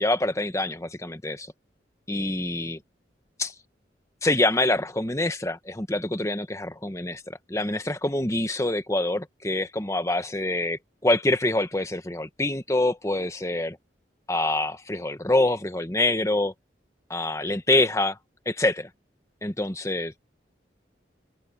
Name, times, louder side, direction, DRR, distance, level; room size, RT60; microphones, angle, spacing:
voice 1, 0.0-1.5 2.1-2.8 3.4-3.5 4.2-13.8 14.3-16.5 17.1-18.2 18.5-18.9 19.4-20.1, left 2 dB, 15° left, 1.2 m, -25 dB
head